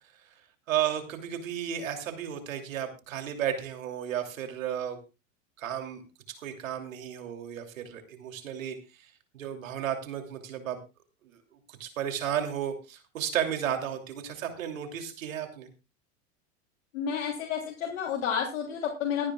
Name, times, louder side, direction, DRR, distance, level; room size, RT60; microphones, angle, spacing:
voice 1, 0.7-5.0 5.6-10.8 11.7-15.7, right 9 dB, 90° right, 6 dB, 2.9 m, -33 dB
voice 2, 16.9-19.3, left 8 dB, 80° left, 0 dB, 3.1 m, -30 dB
22.5 x 10.5 x 2.3 m, 0.28 s
supercardioid pair, 115°, 39 cm